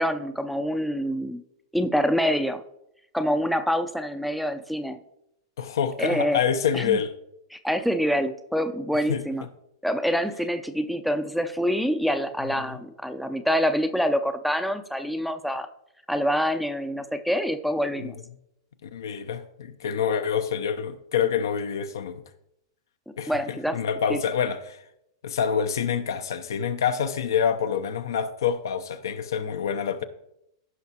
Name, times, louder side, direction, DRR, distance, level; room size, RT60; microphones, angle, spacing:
voice 1, 0.0-1.4 1.7-2.6 3.1-5.0 6.0-6.4 6.7-7.0 7.5-9.4 9.8-15.7 16.1-18.2 23.3-23.8 24.1-24.2, equal, ahead, 0.5 m, -26 dB
voice 2, 5.6-7.1 9.1-9.2 12.6-12.8 18.0-18.1 18.8-22.2 23.2-24.8 25.2-30.0, left 7 dB, 70° left, 0.7 m, -27 dB
15.0 x 5.7 x 2.9 m
hypercardioid pair, 105°, 2 cm